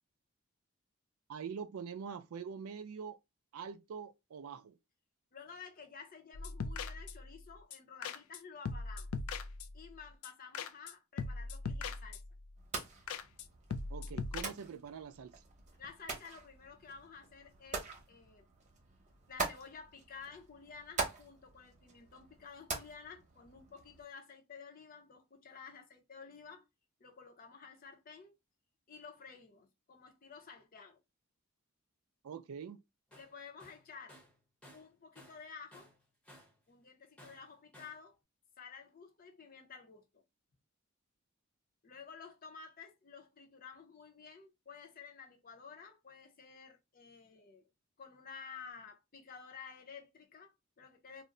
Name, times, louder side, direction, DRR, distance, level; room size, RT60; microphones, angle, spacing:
voice 1, 1.3-3.2 3.5-4.8 13.9-15.3 32.2-32.8, right 6 dB, 80° right, 0.4 m, -44 dB
voice 2, 5.3-9.1 9.7-12.2 15.8-18.5 19.3-26.7 27.0-28.3 28.9-31.0 33.1-34.2 34.7-35.9 36.7-38.2 38.6-40.2 41.8-47.7 48.0-51.2, left 5 dB, 45° left, 0.6 m, -52 dB
sound 1, 6.3-7.4 7.7-7.8 8.0-8.4 8.7-9.9 10.2-10.3 10.5-10.9 11.2-12.4 12.8-12.9 13.1-13.5 13.7-14.4, left 4 dB, 80° left, 0.4 m, -40 dB
sound 2, 12.6-24.0, right 4 dB, 35° right, 0.8 m, -44 dB
Tools, 33.1-33.3 33.6-35.5 35.7-36.6 37.2-38.0, equal, 5° left, 0.8 m, -58 dB
2.4 x 2.1 x 3.7 m
head